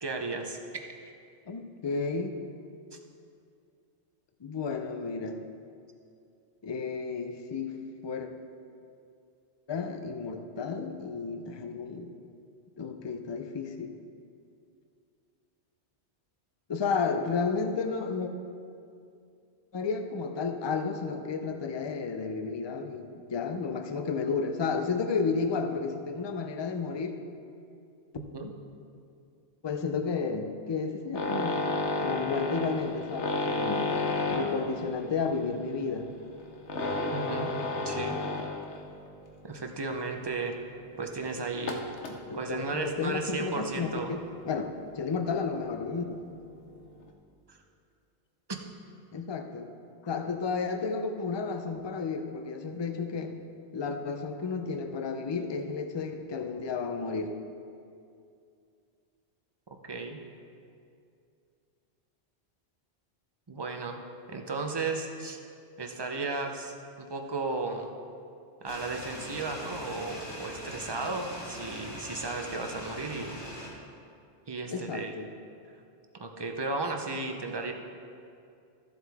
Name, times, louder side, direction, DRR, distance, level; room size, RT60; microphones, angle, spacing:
voice 1, 0.0-0.6 1.0-1.1 28.3-28.5 37.1-37.5 37.8-38.2 39.4-40.6 41.0-41.8 42.3-44.1 47.5-47.6 59.8-60.2 63.5-64.0 64.3-65.4 65.8-67.9 68.6-73.4 74.5-75.1 76.2-77.7, right 3 dB, 25° right, 4 dB, 0.6 m, -34 dB
voice 2, 1.5-2.3 4.4-5.4 6.6-7.7 8.0-8.3 9.7-12.1 12.8-13.9 16.7-18.3 19.7-27.2 29.6-31.7 32.0-34.0 34.3-36.1 42.3-46.1 49.1-49.7 50.0-53.3 53.7-57.3 74.7-75.3, left 5 dB, 35° left, 6 dB, 0.5 m, -32 dB
sound 1, 31.2-38.9 39.3-39.5 40.1-40.2 40.4-40.5 41.6-42.2 43.4-43.6 44.0-44.4 45.2-45.3 45.6-45.7 45.9-46.0, left 3 dB, 80° left, 1.2 m, -31 dB
sound 2, 68.7-73.7, left 1 dB, 15° left, 2.1 m, -42 dB
14.0 x 7.8 x 3.5 m, 2.5 s
omnidirectional pair, 1.2 m